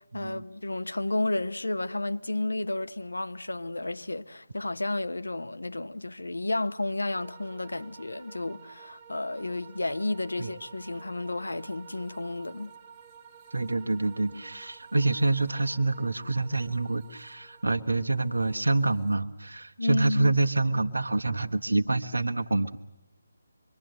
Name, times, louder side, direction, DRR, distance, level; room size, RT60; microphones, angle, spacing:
voice 1, 0.0-12.7 19.8-20.3, left 2 dB, 75° left, 1.0 m, -32 dB
sound 1, 7.1-19.2, right 7 dB, 20° right, 1.6 m, -52 dB
voice 2, 13.5-22.8, right 2 dB, 75° right, 1.3 m, -27 dB
25.0 x 24.0 x 7.9 m
figure-of-eight pair, 150°, 0 cm